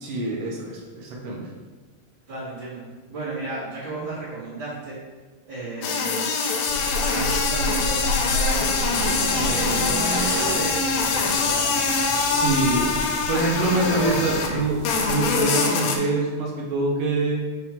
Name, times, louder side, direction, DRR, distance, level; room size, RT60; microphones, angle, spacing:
voice 1, 0.0-1.5 12.3-12.9 13.3-14.8 15.0-17.4, right 2 dB, 70° right, -3 dB, 1.5 m, -25 dB
voice 2, 2.3-5.0 5.5-6.4 7.0-8.9 9.3-12.8 13.5-14.2 14.5-14.6, right 3 dB, 40° right, -14 dB, 2.0 m, -34 dB
sound 1, 5.8-14.5 14.8-16.0, left 4 dB, 85° left, 1.5 m, -24 dB
sound 2, 6.7-15.4, right 1 dB, 90° right, 2.4 m, -31 dB
5.9 x 3.8 x 4.3 m, 1.3 s
omnidirectional pair, 3.9 m